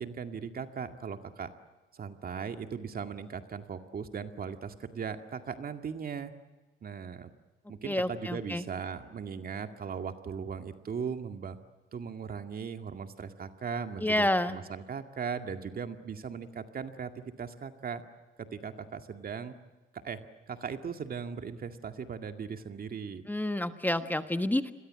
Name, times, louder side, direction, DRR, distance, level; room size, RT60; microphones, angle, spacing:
voice 1, 0.0-1.5 1.9-6.3 6.8-7.3 7.7-11.6 11.9-18.0 18.4-19.5 19.9-20.2 20.5-23.2, right 6 dB, 50° right, 7 dB, 2.2 m, -38 dB
voice 2, 7.8-8.6 14.0-14.6 23.3-24.7, left 1 dB, 10° left, 9 dB, 1.3 m, -29 dB
29.5 x 22.5 x 7.7 m, 1.2 s
cardioid pair, 90°, 20 cm